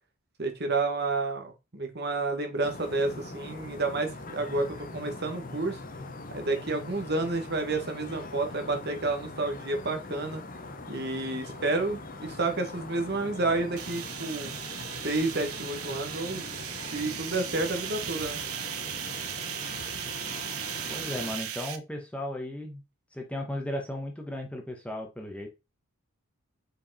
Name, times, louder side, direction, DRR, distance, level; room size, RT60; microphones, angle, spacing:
voice 1, 0.4-5.8 6.3-10.4 10.9-14.6 15.0-16.4 16.9-18.4, right 2 dB, 45° right, 6 dB, 1.4 m, -30 dB
sound 1, 2.6-21.4, left 2 dB, 40° left, 0.9 m, -42 dB
sound 2, 13.8-21.8, right 9 dB, 80° right, 0.9 m, -37 dB
voice 2, 20.9-22.8 23.1-25.5, left 1 dB, 5° left, 2 dB, 1.0 m, -35 dB
5.8 x 4.6 x 4.1 m, 0.25 s
head